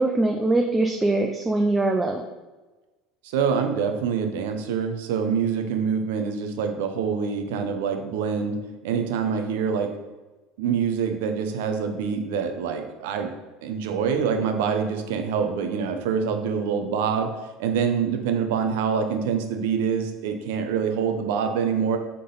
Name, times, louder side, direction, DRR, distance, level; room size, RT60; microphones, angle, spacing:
voice 1, 0.0-2.2, right 2 dB, 10° right, 3 dB, 0.4 m, -22 dB
voice 2, 3.2-8.6 8.8-9.9 10.6-13.3 13.6-17.3 17.6-22.0, right 6 dB, 90° right, 5 dB, 0.8 m, -25 dB
6.6 x 3.9 x 3.9 m, 1.2 s
cardioid pair, 140°, 0 cm